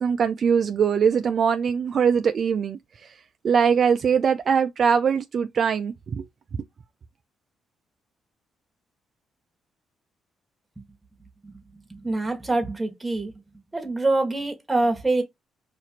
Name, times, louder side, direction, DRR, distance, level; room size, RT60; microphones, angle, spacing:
voice 1, 0.0-3.1 3.4-6.2, right 6 dB, 55° right, 0.3 m, -22 dB
voice 2, 12.0-13.3 13.7-15.2, right 2 dB, 15° right, 1.2 m, -25 dB
2.9 x 2.5 x 4.2 m
cardioid pair, 90°, 0 cm